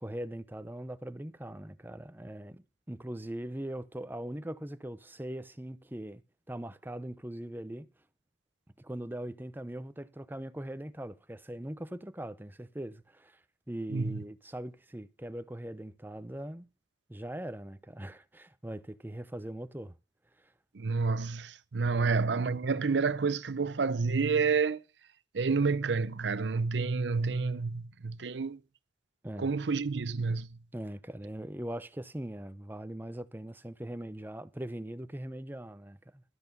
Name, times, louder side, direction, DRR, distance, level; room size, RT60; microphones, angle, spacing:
voice 1, 0.0-6.2 6.5-7.9 8.8-13.4 13.7-16.7 17.1-20.0 22.0-22.2 29.2-29.5 30.7-36.2, right 1 dB, 10° right, 0.8 m, -41 dB
voice 2, 20.7-24.8 25.3-28.6 29.4-30.5, right 4 dB, 75° right, 0.6 m, -29 dB
13.0 x 8.2 x 5.4 m
head